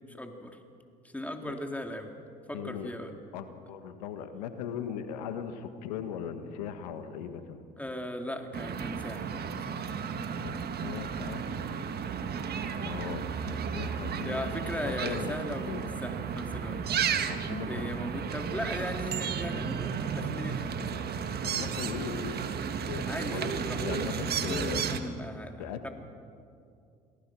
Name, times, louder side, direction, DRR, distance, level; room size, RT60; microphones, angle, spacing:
voice 1, 0.1-0.6 1.1-2.1 2.5-3.1 7.8-9.8 14.2-16.8 17.6-20.7 23.1-25.9, left 1 dB, 5° left, 3 dB, 3.1 m, -38 dB
voice 2, 2.5-2.9 3.3-7.6 10.4-11.4 12.6-14.5 14.8-15.8 17.3-18.0 21.4-22.4 22.9-23.5 23.8-24.8 25.6-25.9, left 8 dB, 85° left, 9 dB, 1.6 m, -39 dB
sound 1, 8.5-25.0, right 7 dB, 50° right, 1.7 m, -33 dB
27.5 x 18.5 x 6.3 m, 2.4 s
hypercardioid pair, 60°, 20 cm